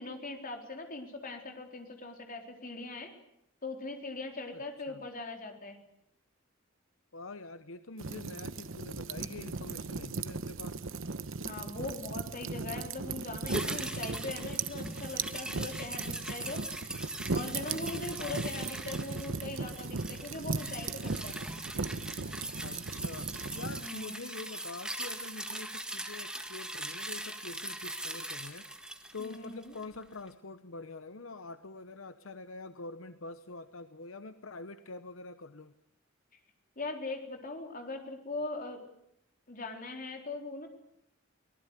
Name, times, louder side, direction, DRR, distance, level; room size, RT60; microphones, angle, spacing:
voice 1, 0.0-3.1 3.6-5.8 11.4-16.6 17.3-21.4 23.8-24.2 29.2-29.7 36.8-38.8 39.5-40.7, left 3 dB, 45° left, 3 dB, 4.1 m, -41 dB
voice 2, 7.1-10.8 18.2-18.5 22.6-35.7, left 3 dB, 75° left, 11 dB, 0.9 m, -45 dB
sound 1, 8.0-23.9, right 4 dB, 70° right, 1.0 m, -37 dB
sound 2, 13.5-30.0 30.3-30.4, right 1 dB, 5° right, 1.7 m, -41 dB
24.0 x 19.0 x 8.3 m, 0.77 s
head